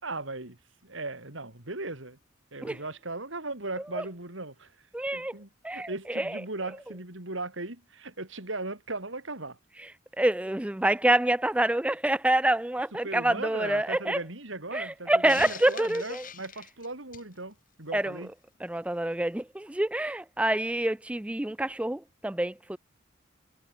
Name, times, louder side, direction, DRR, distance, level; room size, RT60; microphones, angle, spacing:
voice 1, 0.0-2.2 2.5-4.9 5.1-9.6 12.9-18.3, right 2 dB, 70° right, 3.9 m, -38 dB
voice 2, 4.9-5.3 5.6-5.9 6.2-6.3 10.2-14.2 14.7-16.2 17.9-18.2 18.6-22.8, right 1 dB, 5° right, 0.4 m, -27 dB
Hiss, 15.3-17.3, left 8 dB, 40° left, 5.5 m, -43 dB
head